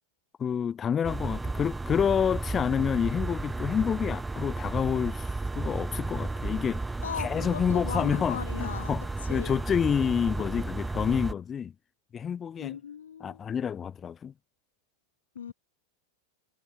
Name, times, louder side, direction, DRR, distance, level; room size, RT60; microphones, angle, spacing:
voice 1, 0.4-11.7 12.1-12.8 13.2-14.3, left 7 dB, 20° left, 0.6 m, -28 dB
sound 1, 1.0-11.3, right 3 dB, 10° right, 1.3 m, -33 dB
voice 2, 7.0-8.9 9.3-9.5 12.6-13.4 15.3-15.5, left 8 dB, 65° left, 0.5 m, -37 dB
figure-of-eight pair, 90°, 0 cm